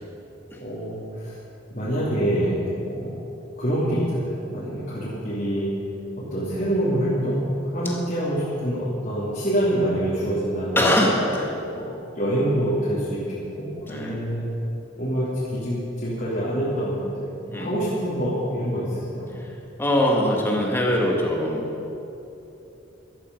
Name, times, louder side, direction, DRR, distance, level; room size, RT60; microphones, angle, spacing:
voice 1, 0.6-1.3 1.7-2.6 2.9-3.2 3.6-5.7 6.2-10.9 11.7-14.5 15.0-17.2 17.5-19.3, right 1 dB, 45° left, -10 dB, 3.1 m, -26 dB
voice 2, 10.8-11.5 13.8-14.2 17.5-17.8 19.8-21.6, left 1 dB, 10° left, -1 dB, 2.0 m, -22 dB
14.5 x 13.0 x 5.5 m, 2.9 s
head